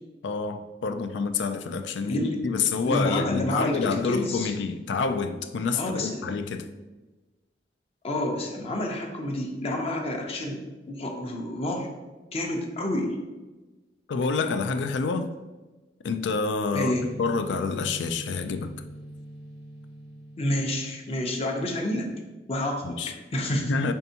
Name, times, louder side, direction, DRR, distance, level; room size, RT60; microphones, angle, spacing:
voice 1, 0.2-6.7 14.1-15.3 16.0-18.7 22.8-23.1 23.7-23.9, left 4 dB, 85° left, 0.4 m, -28 dB
voice 2, 2.1-2.4 2.8-4.5 5.8-6.2 8.0-11.9 12.3-13.1 16.7-17.1 20.4-22.1 22.5-23.0 23.3-23.7, left 1 dB, 35° left, 0.6 m, -29 dB
sound 1, 16.7-21.6, equal, 75° right, 0.6 m, -43 dB
5.5 x 3.4 x 2.8 m
head